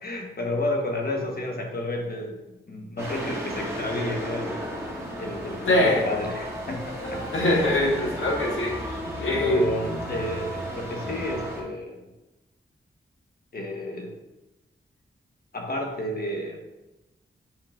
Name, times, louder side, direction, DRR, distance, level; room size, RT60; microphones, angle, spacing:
voice 1, 0.0-2.4 2.7-4.6 5.2-7.3 7.6-7.7 9.1-12.0 13.5-14.1 15.5-16.6, left 1 dB, 50° left, 1 dB, 1.3 m, -31 dB
sound 1, 3.0-11.6, equal, 15° right, 2.0 m, -34 dB
voice 2, 5.7-6.1 7.3-8.8 9.2-9.7, left 1 dB, 85° left, -2 dB, 1.7 m, -22 dB
7.5 x 5.5 x 2.6 m, 1.0 s
wide cardioid pair, 95°, 20 cm